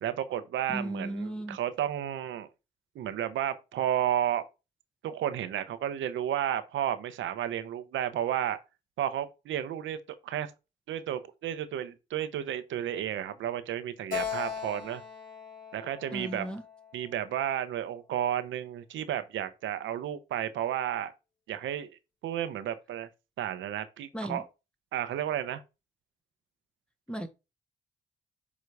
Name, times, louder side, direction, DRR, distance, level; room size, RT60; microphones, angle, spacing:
voice 1, 0.0-2.5 2.9-4.4 5.0-8.6 9.0-10.0 10.2-10.5 10.9-15.0 15.7-16.5 16.9-21.1 21.5-23.1 23.4-24.4 24.9-25.6, right 10 dB, 80° right, 0.9 m, -32 dB
voice 2, 0.7-1.6 16.1-16.6 24.1-24.4 27.1-27.3, right 1 dB, 5° left, 1.0 m, -35 dB
Keyboard (musical), 14.1-17.6, left 7 dB, 45° left, 4.1 m, -39 dB
7.2 x 3.1 x 4.7 m
cardioid pair, 75°, 20 cm